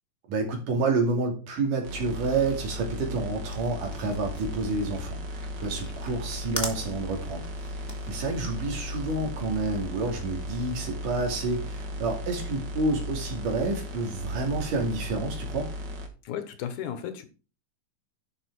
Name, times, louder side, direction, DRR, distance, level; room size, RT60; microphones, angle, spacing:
voice 1, 0.3-7.5 7.7-15.7, right 3 dB, 80° right, 4.1 m, -29 dB
sound 1, 1.8-16.1, equal, 45° right, 1.7 m, -36 dB
sound 2, 3.5-10.0, left 1 dB, 5° left, 1.6 m, -40 dB
voice 2, 16.2-17.3, left 9 dB, 75° left, 2.5 m, -34 dB
11.0 x 6.2 x 4.6 m
omnidirectional pair, 3.7 m